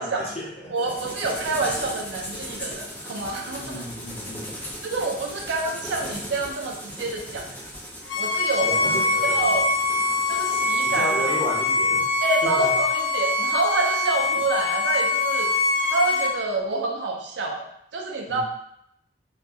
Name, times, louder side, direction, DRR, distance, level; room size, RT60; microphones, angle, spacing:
voice 1, 0.0-0.9 2.7-2.8 3.6-4.6 8.6-9.5 10.8-12.1 12.4-12.7 18.3-18.4, equal, 35° left, -6 dB, 0.8 m, -33 dB
voice 2, 0.7-3.8 4.8-7.5 8.2-8.7 9.2-9.7 10.3-11.3 12.2-15.5 15.9-17.7 17.9-18.4, right 2 dB, 70° right, 1 dB, 0.4 m, -27 dB
sound 1, 0.8-11.5, equal, 10° left, 0.4 m, -38 dB
Bowed string instrument, 8.1-16.3, left 3 dB, 75° left, 0.5 m, -23 dB
2.7 x 2.2 x 2.3 m, 0.74 s
head